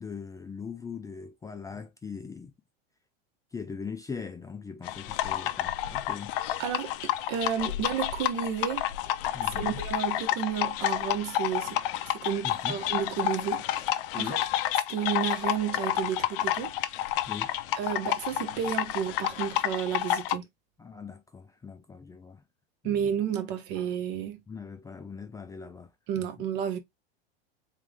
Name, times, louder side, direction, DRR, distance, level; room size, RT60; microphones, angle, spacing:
voice 1, 0.0-2.5 3.5-6.3 9.3-9.8 12.4-12.8 14.1-14.4 17.3-17.5 20.8-22.4 22.8-23.1 24.5-26.3, left 5 dB, 10° left, 0.4 m, -40 dB
sound 1, 4.8-20.3, left 13 dB, 65° left, 0.6 m, -30 dB
voice 2, 6.6-8.8 9.6-14.4 14.9-16.7 17.8-20.4 22.8-24.4 26.1-26.8, right 9 dB, 55° right, 1.3 m, -32 dB
3.7 x 3.2 x 3.4 m
hypercardioid pair, 115°, 30 cm